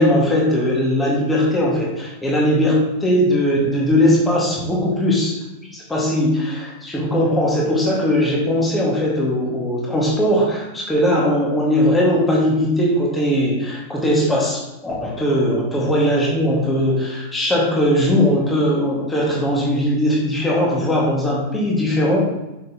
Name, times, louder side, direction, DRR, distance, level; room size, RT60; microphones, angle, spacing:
voice 1, 0.0-5.4 5.7-22.2, equal, 10° left, -4 dB, 1.8 m, -19 dB
6.1 x 5.9 x 2.9 m, 0.99 s
figure-of-eight pair, 90°, 0 cm